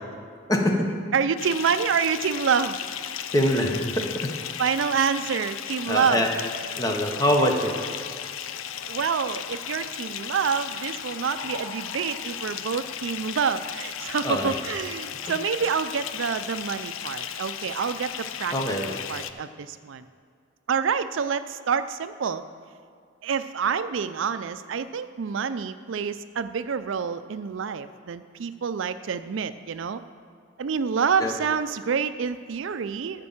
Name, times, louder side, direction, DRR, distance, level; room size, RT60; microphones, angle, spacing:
voice 1, 0.5-1.0 3.3-4.3 5.9-6.3 6.8-7.7 14.2-14.5 18.5-19.0 31.2-31.3, equal, 20° left, 2 dB, 1.0 m, -24 dB
voice 2, 1.1-2.8 4.6-6.2 8.8-18.6 19.1-20.0 20.7-22.4 23.2-30.0 30.6-33.3, right 6 dB, 75° right, 12 dB, 0.4 m, -27 dB
Bathtub (filling or washing) / Fill (with liquid), 1.4-19.3, left 9 dB, 85° left, 0.5 m, -35 dB
Liquid, 10.0-13.7 14.3-14.8, left 2 dB, 50° left, 2.4 m, -46 dB
13.0 x 5.2 x 7.2 m, 2.2 s
head